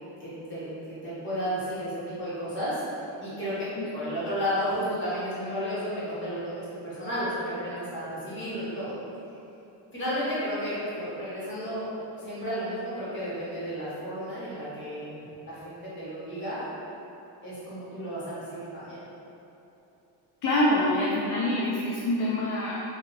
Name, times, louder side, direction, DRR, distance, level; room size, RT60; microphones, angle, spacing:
voice 1, 0.2-2.8 3.2-8.9 9.9-11.9 12.2-16.7 17.4-19.0, equal, 30° left, -10 dB, 1.3 m, -33 dB
voice 2, 20.4-22.8, left 1 dB, 50° left, -4 dB, 0.4 m, -25 dB
2.7 x 2.3 x 3.1 m, 3.0 s
cardioid pair, 110°, 41 cm